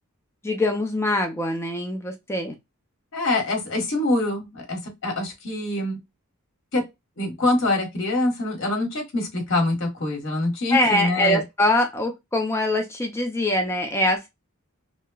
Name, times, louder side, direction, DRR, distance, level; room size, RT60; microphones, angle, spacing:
voice 1, 0.4-2.5 10.7-14.3, left 1 dB, 10° left, 0.4 m, -23 dB
voice 2, 3.1-6.0 6.7-6.8 7.2-11.4, left 2 dB, 55° left, 1.1 m, -25 dB
2.9 x 2.1 x 2.2 m
head